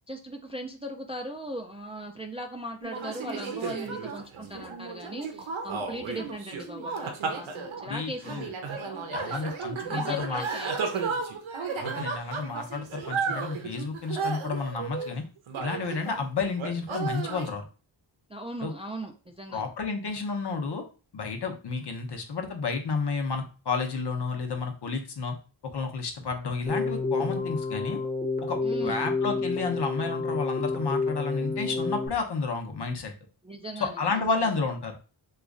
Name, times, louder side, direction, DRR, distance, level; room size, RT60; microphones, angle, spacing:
voice 1, 0.1-9.5 9.8-11.1 18.3-19.7 28.6-29.0 33.4-34.2, equal, 15° right, 2 dB, 0.3 m, -39 dB
sound 1, 2.8-16.2 16.6-17.5, right 5 dB, 85° right, 0.7 m, -34 dB
voice 2, 7.9-8.5 9.1-10.4 11.8-15.2 15.6-17.7 18.6-18.7 19.5-20.8 21.1-25.4 25.6-28.0 28.4-33.1 33.8-35.0, left 4 dB, 60° left, 4 dB, 0.8 m, -31 dB
Keyboard (musical), 26.7-32.1, left 3 dB, 20° left, 0.8 m, -29 dB
3.0 x 2.4 x 3.6 m, 0.35 s
wide cardioid pair, 80°, 46 cm